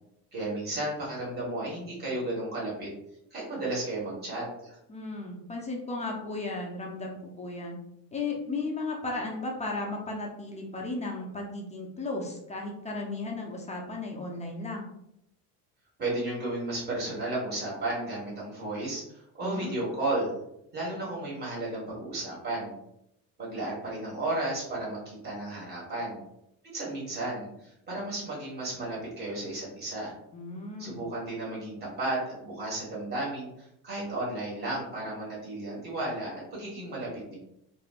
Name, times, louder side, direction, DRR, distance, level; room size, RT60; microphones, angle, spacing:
voice 1, 0.3-2.9 3.3-4.8 16.0-20.3 20.7-22.7 23.4-26.2 26.6-30.1 30.8-37.4, right 2 dB, 20° right, -6 dB, 1.4 m, -33 dB
voice 2, 4.9-7.8 8.1-14.8 19.4-19.7 30.3-31.0, left 2 dB, 15° left, 0 dB, 0.5 m, -35 dB
3.2 x 2.6 x 2.4 m, 0.79 s
supercardioid pair, 105°, 47 cm